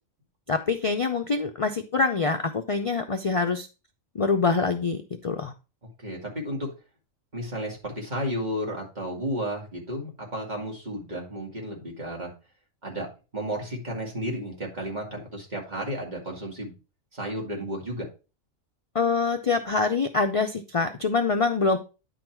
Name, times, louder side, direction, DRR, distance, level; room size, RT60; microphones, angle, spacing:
voice 1, 0.5-3.7 4.1-5.5 18.9-21.8, left 4 dB, 60° left, 5 dB, 0.3 m, -25 dB
voice 2, 6.0-6.7 7.3-12.3 12.8-13.1 13.3-16.7 17.1-18.1, equal, 35° right, -1 dB, 2.2 m, -32 dB
9.7 x 3.9 x 4.5 m, 0.32 s
omnidirectional pair, 1.4 m